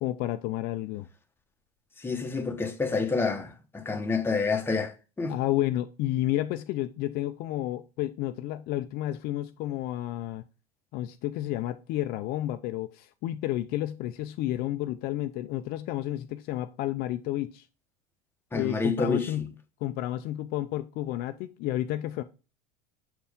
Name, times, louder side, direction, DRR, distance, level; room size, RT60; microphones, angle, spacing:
voice 1, 0.0-1.1 5.3-10.4 10.9-17.6 18.5-19.5 19.8-22.2, left 14 dB, 55° left, 0.5 m, -31 dB
voice 2, 2.0-5.4 18.5-19.3, left 4 dB, 10° left, 1.1 m, -28 dB
6.9 x 4.3 x 3.6 m
supercardioid pair, 110°, 19 cm